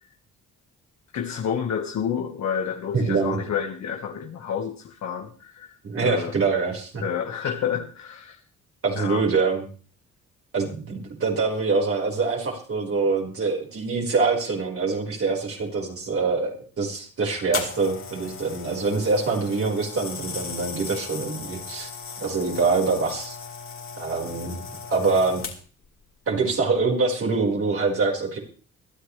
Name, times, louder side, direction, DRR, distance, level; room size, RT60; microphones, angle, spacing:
voice 1, 1.1-6.4 7.0-8.4 9.0-9.2, left 8 dB, 65° left, 3 dB, 1.6 m, -29 dB
voice 2, 2.9-3.4 5.8-7.0 8.8-9.7 10.5-21.9 22.2-23.4 24.0-24.6 24.9-25.4 26.3-28.4, right 4 dB, 50° right, -1 dB, 5.0 m, -24 dB
sound 1, 17.5-25.9 26.6-26.8, left 5 dB, 45° left, 3.1 m, -37 dB
22.0 x 12.0 x 3.3 m, 0.40 s
cardioid pair, 90°, 30 cm